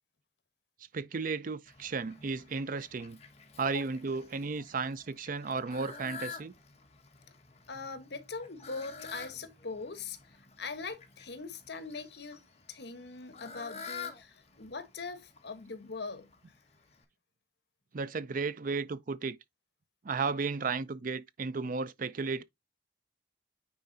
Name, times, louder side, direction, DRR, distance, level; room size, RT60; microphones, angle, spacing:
voice 1, 0.9-3.2 3.6-6.5 17.9-19.4 20.0-22.4, right 4 dB, 50° right, 0.5 m, -34 dB
Fowl, 1.7-17.0, left 5 dB, 40° left, 1.5 m, -49 dB
voice 2, 7.7-12.4 12.7-16.3, left 4 dB, 70° left, 1.2 m, -41 dB
9.4 x 4.4 x 2.7 m
head